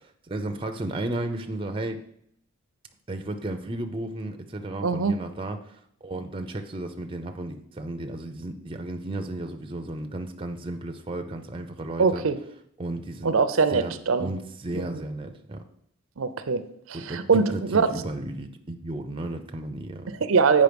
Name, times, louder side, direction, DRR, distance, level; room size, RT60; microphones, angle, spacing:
voice 1, 0.3-2.0 3.1-12.2 12.8-13.3 13.7-13.9 14.2-15.6 16.9-20.2, right 2 dB, 25° right, 6 dB, 0.5 m, -34 dB
voice 2, 4.8-5.1 12.0-12.4 13.2-14.3 14.7-14.9 16.2-16.6 16.9-17.9 20.2-20.6, right 5 dB, 70° right, 11 dB, 0.5 m, -22 dB
7.8 x 5.2 x 5.2 m, 0.69 s
head